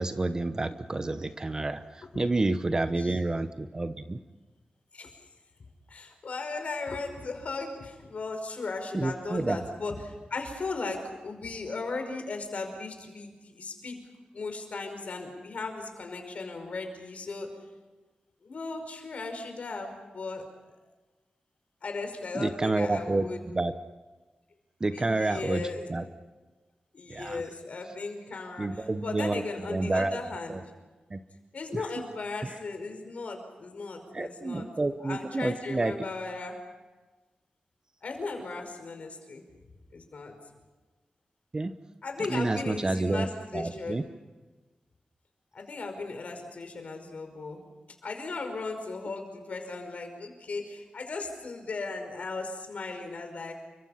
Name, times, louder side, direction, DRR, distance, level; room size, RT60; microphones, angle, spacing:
voice 1, 0.0-4.2 8.9-9.6 22.3-23.7 24.8-25.6 25.9-26.0 27.1-27.4 28.6-29.4 29.7-30.2 30.5-30.6 31.1-31.2 31.7-31.8 32.4-32.5 34.1-36.0 41.5-41.7 42.3-43.3 43.5-44.0, right 2 dB, 25° right, 10 dB, 0.9 m, -29 dB
voice 2, 4.9-5.3 5.9-14.0 14.3-17.5 18.4-20.5 21.8-23.4 24.9-25.9 26.9-30.6 31.5-34.7 35.0-36.6 38.0-39.4 39.9-40.3 42.0-44.0 45.5-47.7 48.0-53.5, left 3 dB, 55° left, 5 dB, 5.3 m, -37 dB
29.5 x 25.0 x 5.8 m, 1.3 s
wide cardioid pair, 170°, 3 cm